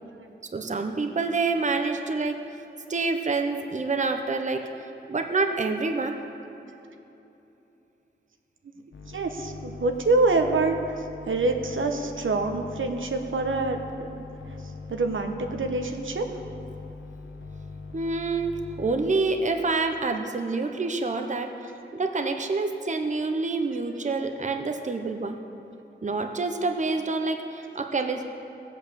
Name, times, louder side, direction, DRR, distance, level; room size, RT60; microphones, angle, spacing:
voice 1, 0.5-2.4 2.9-6.2 17.9-25.4 26.0-28.2, right 3 dB, 40° right, 5 dB, 0.8 m, -27 dB
sound 1, 8.9-19.2, left 3 dB, 80° left, 1.0 m, -41 dB
voice 2, 9.1-14.3 14.9-16.3, right 3 dB, 80° right, 4 dB, 1.1 m, -26 dB
17.0 x 8.2 x 6.9 m, 2.9 s
wide cardioid pair, 105°, 20 cm